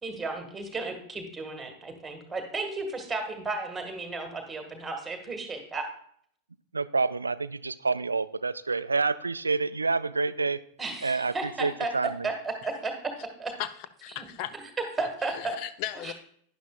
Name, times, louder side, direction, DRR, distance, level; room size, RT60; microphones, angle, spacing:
voice 1, 0.0-5.8 10.8-11.9 12.2-12.9 13.4-13.5 14.1-14.2 15.0-15.6 16.0-16.1, right 3 dB, 10° right, 4 dB, 1.7 m, -34 dB
voice 2, 6.7-10.6 11.0-12.3, right 4 dB, 80° right, 16 dB, 0.3 m, -28 dB
voice 3, 14.0-14.5 15.0-16.1, left 12 dB, 45° left, 13 dB, 0.6 m, -36 dB
11.5 x 10.0 x 2.3 m, 0.63 s
figure-of-eight pair, 90°, 0 cm